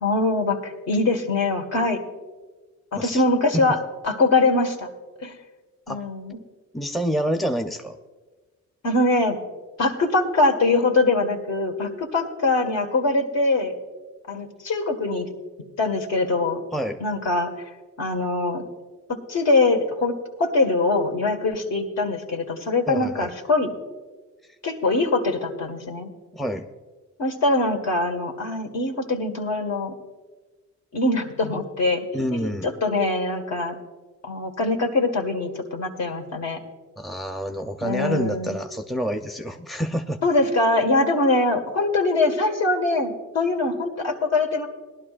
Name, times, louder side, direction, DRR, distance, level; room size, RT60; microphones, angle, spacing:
voice 1, 0.0-2.0 2.9-3.8 4.1-4.9 5.2-5.4 5.9-6.4 8.8-9.4 9.8-13.7 14.3-15.3 15.8-16.6 17.0-17.5 18.0-18.6 19.1-23.7 24.6-26.1 27.2-29.9 30.9-33.8 34.2-36.6 37.8-38.6 40.2-44.7, left 2 dB, 60° left, 3 dB, 1.8 m, -23 dB
voice 2, 6.7-8.0 16.7-17.0 22.9-23.3 26.3-26.7 32.1-32.7 37.0-40.2, equal, ahead, 5 dB, 0.7 m, -27 dB
19.0 x 11.5 x 2.5 m, 1.3 s
cardioid pair, 90°, 30 cm